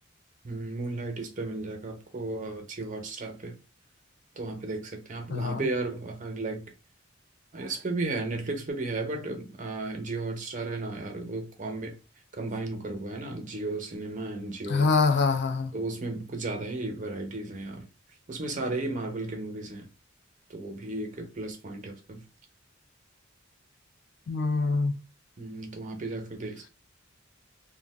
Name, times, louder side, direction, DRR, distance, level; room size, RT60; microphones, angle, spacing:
voice 1, 0.4-3.5 4.3-6.6 7.5-12.0 12.3-14.9 15.7-17.9 18.3-19.9 20.5-22.2 25.4-26.7, right 2 dB, 40° right, 0.6 m, -34 dB
voice 2, 5.3-5.6 14.7-15.7 24.3-25.0, left 4 dB, 55° left, 0.4 m, -25 dB
2.4 x 2.1 x 3.3 m
head